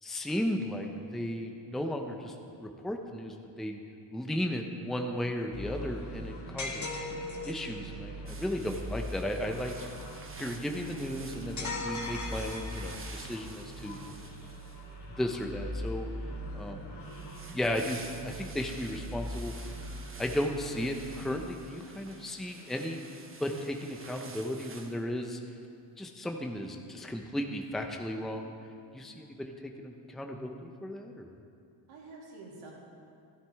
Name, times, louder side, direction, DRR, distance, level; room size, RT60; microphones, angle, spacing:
voice 1, 0.0-3.8 4.1-6.9 7.5-9.9 10.4-14.0 15.2-16.1 16.5-16.9 17.5-19.5 20.2-23.1 23.4-25.4 26.0-28.5 28.9-29.5 29.8-31.3, left 1 dB, ahead, 3 dB, 0.7 m, -35 dB
sound 1, 5.5-21.4, equal, 55° left, 3.1 m, -42 dB
sound 2, 6.6-7.8 11.6-13.1, left 3 dB, 35° left, 1.8 m, -37 dB
sound 3, 8.3-15.1 17.0-25.0, right 4 dB, 25° right, 1.0 m, -50 dB
voice 2, 13.7-14.2 31.9-32.7, right 3 dB, 80° right, -4 dB, 3.1 m, -49 dB
14.5 x 11.5 x 3.6 m, 2.5 s
cardioid pair, 100°, 50 cm